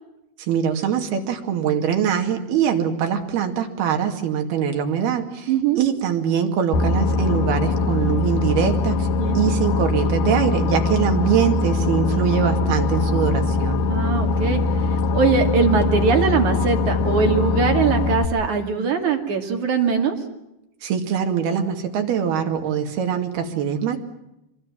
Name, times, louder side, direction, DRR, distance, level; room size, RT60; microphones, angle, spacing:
voice 1, 0.4-5.5 5.8-9.1 9.3-13.8 20.8-24.0, right 8 dB, 60° right, 4 dB, 4.1 m, -23 dB
voice 2, 5.5-5.8 9.2-9.4 13.9-14.6 15.1-20.2, right 5 dB, 45° right, 3 dB, 3.5 m, -21 dB
Boat Water vehicle, 6.7-18.3, left 3 dB, 70° left, 2.1 m, -22 dB
25.5 x 24.0 x 7.4 m, 0.89 s
omnidirectional pair, 5.3 m